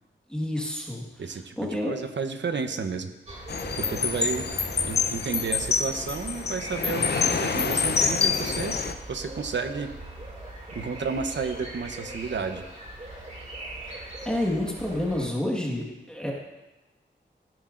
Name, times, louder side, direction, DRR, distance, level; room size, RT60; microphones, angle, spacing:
voice 1, 0.3-1.0 1.6-2.0 13.9-14.0 14.2-16.3, left 1 dB, 5° left, -2 dB, 1.6 m, -29 dB
voice 2, 1.2-3.1 3.8-4.5 4.8-8.8 9.1-9.9 10.7-12.7, right 5 dB, 65° right, 8 dB, 0.8 m, -32 dB
sound 1, 3.3-15.3, right 1 dB, 35° right, 2.3 m, -40 dB
sound 2, 3.5-8.9, left 5 dB, 55° left, 0.6 m, -26 dB
14.0 x 10.0 x 2.5 m, 1.0 s
wide cardioid pair, 110°, 20 cm